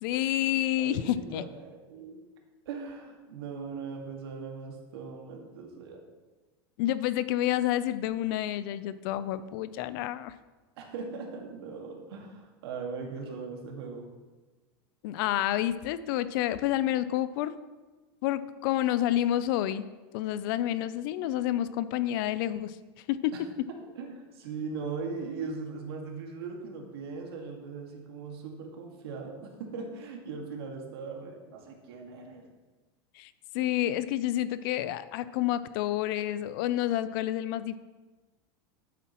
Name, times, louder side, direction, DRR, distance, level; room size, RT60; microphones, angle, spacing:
voice 1, 0.0-1.4 6.8-10.3 15.0-17.5 18.2-19.8 20.1-22.7 23.1-23.3 33.2-37.8, left 13 dB, 60° left, 15 dB, 0.5 m, -29 dB
voice 2, 0.8-2.2 2.7-6.0 10.8-14.1 23.3-32.5, right 4 dB, 85° right, 1 dB, 1.9 m, -39 dB
11.0 x 8.4 x 3.1 m, 1.2 s
supercardioid pair, 140°, 13 cm